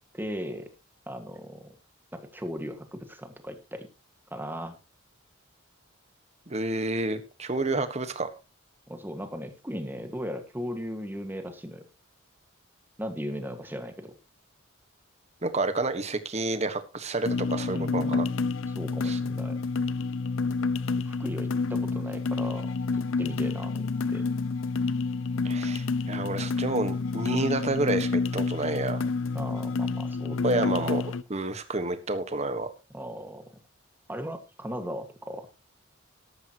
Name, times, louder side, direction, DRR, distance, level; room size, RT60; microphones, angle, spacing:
voice 1, 0.1-0.7 1.1-1.8 2.1-3.9 4.3-4.8 8.9-11.9 13.0-14.1 17.7-19.6 21.0-22.7 23.2-24.2 29.3-30.9 32.9-33.5 34.1-35.5, equal, 10° right, 7 dB, 1.7 m, -37 dB
voice 2, 6.5-8.3 15.4-18.3 19.0-19.2 25.4-29.1 30.4-31.0 31.3-32.7, right 2 dB, 30° right, 10 dB, 1.4 m, -29 dB
sound 1, 17.2-31.2, left 4 dB, 70° left, 0.6 m, -29 dB
13.5 x 12.5 x 3.0 m, 0.29 s
head